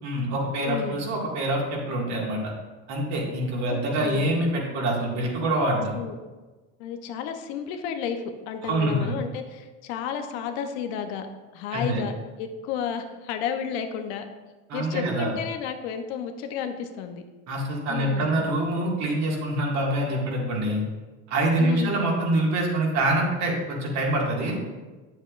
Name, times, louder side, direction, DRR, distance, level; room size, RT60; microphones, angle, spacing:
voice 1, 0.0-2.5 2.9-5.9 8.6-9.1 11.7-12.0 14.7-15.3 17.5-20.8 21.3-24.6, right 1 dB, 55° right, -2 dB, 2.0 m, -25 dB
voice 2, 0.6-1.0 3.7-4.3 5.9-6.2 6.8-11.3 11.5-12.1 12.4-14.2 14.7-17.2 17.9-18.4 21.6-21.9, left 7 dB, 75° left, 6 dB, 0.8 m, -32 dB
8.0 x 7.2 x 2.5 m, 1.3 s
supercardioid pair, 100°, 33 cm